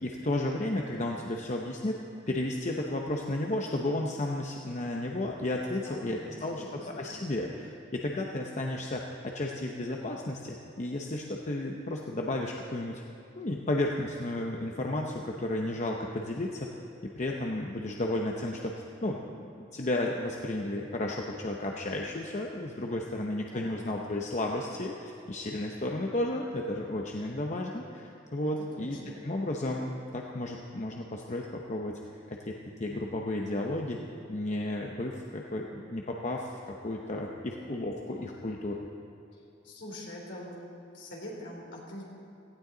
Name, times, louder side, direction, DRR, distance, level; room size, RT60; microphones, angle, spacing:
voice 1, 0.0-13.0 13.4-16.7 17.0-18.7 19.0-29.0 29.2-32.0 32.3-34.0 34.3-38.9, left 1 dB, 40° left, 0 dB, 0.8 m, -33 dB
voice 2, 5.8-7.1 23.5-23.9 28.4-29.1 39.6-40.6 40.9-42.0, left 1 dB, 65° left, -2 dB, 3.5 m, -44 dB
17.5 x 15.5 x 3.9 m, 2.7 s
head